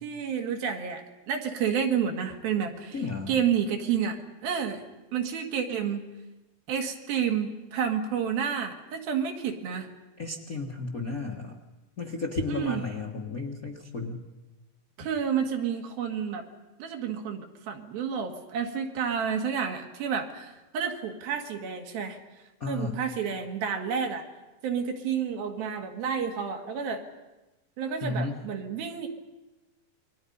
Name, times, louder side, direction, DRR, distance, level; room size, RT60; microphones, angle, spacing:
voice 1, 0.0-4.8 5.1-6.0 6.7-9.9 12.5-12.8 15.0-16.4 16.8-22.2 22.7-24.3 24.6-27.0 27.8-29.1, right 7 dB, 85° right, 3 dB, 3.9 m, -30 dB
voice 2, 2.9-3.3 10.2-11.5 12.0-14.2 22.6-23.0 28.0-28.3, left 3 dB, 80° left, -1 dB, 0.7 m, -33 dB
28.5 x 22.5 x 5.5 m, 1.1 s
omnidirectional pair, 4.1 m